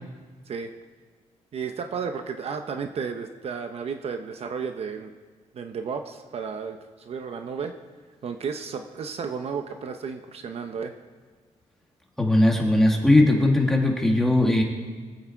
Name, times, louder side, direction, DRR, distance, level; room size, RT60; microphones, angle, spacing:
voice 1, 1.5-5.1 5.5-7.7 8.2-10.9, right 6 dB, 55° right, 6 dB, 0.9 m, -33 dB
voice 2, 12.2-14.6, left 1 dB, 5° left, 0 dB, 2.1 m, -19 dB
24.0 x 8.7 x 4.6 m, 1.4 s
cardioid pair, 135°, 12 cm